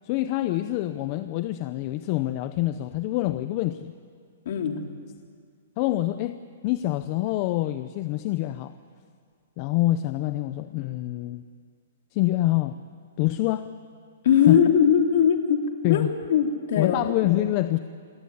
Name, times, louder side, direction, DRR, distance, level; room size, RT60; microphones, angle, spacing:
voice 1, 0.0-3.9 5.8-6.4 6.6-8.7 9.6-11.4 12.1-12.8 13.2-13.7 14.5-14.6 15.8-16.1 16.8-17.8, left 16 dB, 30° left, 11 dB, 0.6 m, -25 dB
voice 2, 4.4-4.8 14.2-15.6 15.9-17.0, left 8 dB, 50° left, 4 dB, 2.9 m, -20 dB
27.0 x 17.0 x 9.5 m, 2.1 s
hypercardioid pair, 170°, 0 cm